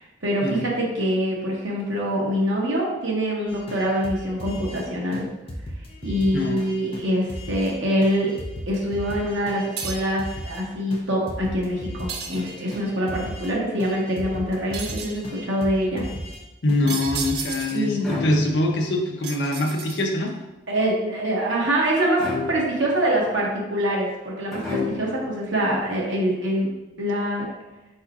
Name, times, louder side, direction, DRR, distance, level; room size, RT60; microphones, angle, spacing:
voice 1, 0.0-5.3 6.0-8.3 8.7-16.1 17.7-18.1 20.7-26.7 27.0-27.5, equal, 90° right, -3 dB, 1.1 m, -24 dB
sound 1, 3.5-4.8 5.1-5.2 5.5-7.7 8.0-10.6 10.9-11.0 11.3-13.5 13.8-16.4 16.7-16.8 17.0-17.6, equal, 30° left, 0.6 m, -36 dB
sound 2, 9.8-10.2 12.1-12.9 14.7-15.3 16.9-17.9 19.2-20.3, right 6 dB, 60° right, 0.5 m, -33 dB
voice 2, 16.6-20.3, left 1 dB, 75° left, 1 dB, 0.7 m, -23 dB
sound 3, 16.8-17.4 18.0-18.9 22.2-23.0 24.5-25.3, left 3 dB, ahead, 1.2 m, -31 dB
4.7 x 4.2 x 2.4 m, 1.0 s
head